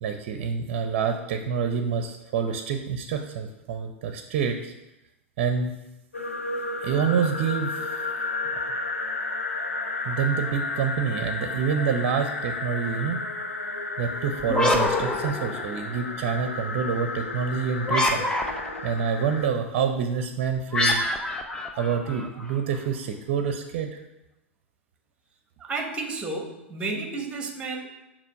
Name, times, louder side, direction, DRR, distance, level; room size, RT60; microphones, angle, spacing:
voice 1, 0.0-4.7 5.4-5.7 6.8-8.0 10.1-13.2 14.0-18.3 18.8-21.0 21.8-24.0, right 6 dB, 50° right, 6 dB, 0.6 m, -27 dB
sound 1, 6.1-19.5, left 3 dB, 85° left, 0.6 m, -32 dB
sound 2, 14.4-16.0 17.8-18.9 20.7-22.6, left 2 dB, 10° left, 0.7 m, -26 dB
voice 2, 25.6-27.9, right 3 dB, 15° right, 4 dB, 1.0 m, -32 dB
6.7 x 3.0 x 5.3 m, 0.96 s
figure-of-eight pair, 100°, 7 cm